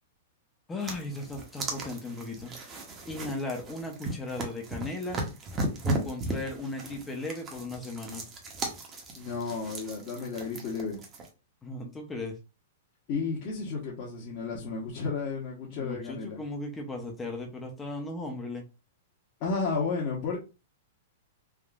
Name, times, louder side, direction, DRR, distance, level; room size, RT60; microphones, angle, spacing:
voice 1, 0.7-2.6 3.1-5.2 5.8-8.2 11.6-12.4 15.7-18.6, left 2 dB, 15° left, 0.6 m, -36 dB
sound 1, 0.8-11.3, right 2 dB, 25° right, 0.8 m, -36 dB
voice 2, 9.2-11.0 13.1-16.4 19.4-20.4, left 4 dB, 45° left, 1.0 m, -32 dB
3.6 x 2.4 x 2.4 m
hypercardioid pair, 140°, 0 cm